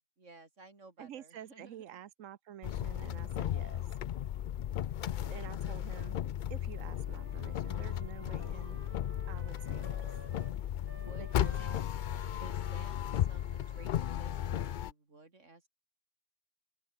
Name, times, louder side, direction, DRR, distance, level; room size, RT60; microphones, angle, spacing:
voice 1, 0.2-1.8 4.3-4.9 10.8-11.8 12.2-15.7, right 3 dB, 70° right, 4.0 m, -56 dB
voice 2, 1.0-3.9 5.2-6.2 6.5-8.8 9.3-10.0 11.2-11.5, right 10 dB, 85° right, 1.2 m, -49 dB
sound 1, 2.6-14.9, left 11 dB, 65° left, 0.5 m, -35 dB
Wind instrument woodwind instrument, 6.9-10.6 10.8-14.7, right 1 dB, 10° right, 1.4 m, -55 dB
open air
omnidirectional pair, 1.3 m